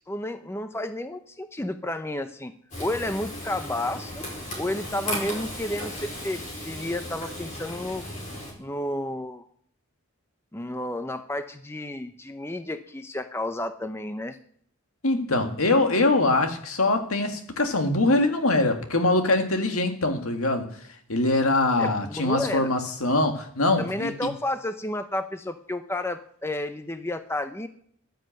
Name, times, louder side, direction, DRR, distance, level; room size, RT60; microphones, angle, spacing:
voice 1, 0.1-2.5 2.8-4.3 4.6-8.0 8.6-9.5 10.5-14.4 21.8-22.7 23.8-27.7, left 1 dB, 10° left, 0.6 m, -31 dB
Frying (food), 2.7-8.5, left 1 dB, 35° left, 5.0 m, -35 dB
voice 2, 15.0-20.7 21.1-24.1, left 2 dB, 80° left, 1.9 m, -23 dB
11.5 x 10.5 x 7.8 m
head